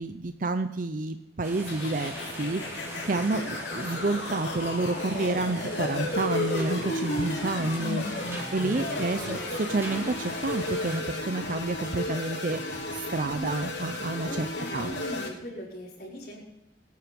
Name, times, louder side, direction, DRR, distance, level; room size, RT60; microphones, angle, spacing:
voice 1, 0.0-14.9, right 2 dB, 50° right, 9 dB, 0.7 m, -30 dB
sound 1, 1.4-11.0, equal, 15° right, 4.4 m, -41 dB
sound 2, 1.7-15.3, left 1 dB, 85° left, 3.3 m, -33 dB
voice 2, 3.1-3.5 8.9-9.5 14.2-16.4, left 1 dB, 55° left, -2 dB, 5.0 m, -40 dB
22.5 x 9.5 x 5.3 m, 0.89 s
head